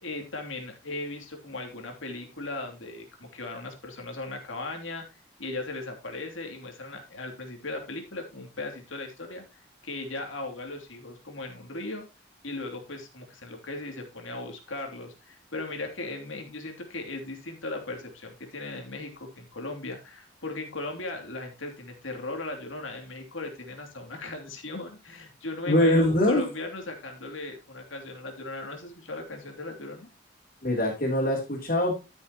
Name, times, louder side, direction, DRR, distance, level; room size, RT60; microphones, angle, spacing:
voice 1, 0.0-5.0 5.4-12.0 12.4-30.1, left 2 dB, 80° left, 3 dB, 2.9 m, -37 dB
voice 2, 25.7-26.4 30.6-32.0, left 1 dB, 45° left, -6 dB, 3.4 m, -23 dB
13.0 x 7.2 x 3.0 m, 0.28 s
head